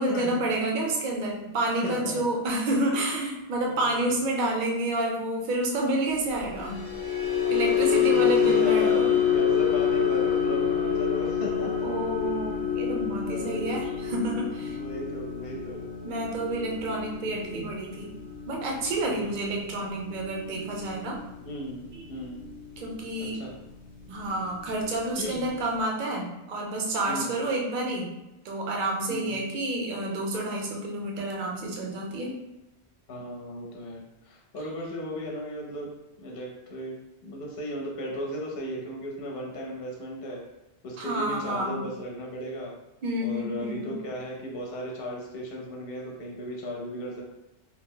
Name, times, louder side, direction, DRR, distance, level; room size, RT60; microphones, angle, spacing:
voice 1, 0.0-6.8 7.5-9.2 11.8-14.8 16.0-18.1 18.5-21.2 21.9-22.0 22.8-23.4 24.1-28.1 28.4-32.4 41.0-41.9 43.0-43.9, right 1 dB, 55° right, -1 dB, 0.7 m, -29 dB
voice 2, 1.8-2.2 3.6-4.1 7.8-9.0 9.3-11.9 13.2-13.7 14.7-15.9 19.1-19.4 21.4-21.8 22.1-22.5 23.2-23.5 25.1-25.5 27.0-27.4 29.1-29.4 33.1-35.9 36.2-37.0 37.2-40.4 40.8-42.7 43.2-47.2, equal, 65° left, -1 dB, 0.8 m, -36 dB
sound 1, 6.5-22.9 23.2-23.5 23.8-24.1, left 8 dB, 30° left, 0.8 m, -27 dB
2.8 x 2.0 x 3.6 m, 0.95 s
omnidirectional pair, 1.1 m